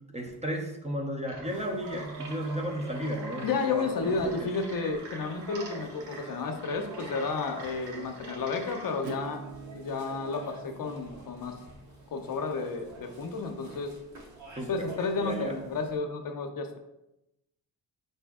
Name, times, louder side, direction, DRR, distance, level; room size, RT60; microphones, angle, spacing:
voice 1, 0.1-4.5 14.6-15.6, equal, 15° right, 2 dB, 0.5 m, -34 dB
sound 1, 1.2-9.1, right 3 dB, 90° right, 0.9 m, -46 dB
sound 2, 1.5-16.0, right 2 dB, 45° right, 1.2 m, -48 dB
voice 2, 3.4-9.4 9.7-11.6 12.1-13.9 14.7-16.8, left 4 dB, 55° left, 5 dB, 0.6 m, -32 dB
Acoustic guitar / Strum, 9.0-14.5, right 5 dB, 70° right, 0.5 m, -47 dB
4.9 x 2.7 x 3.6 m, 0.90 s
cardioid pair, 100°, 41 cm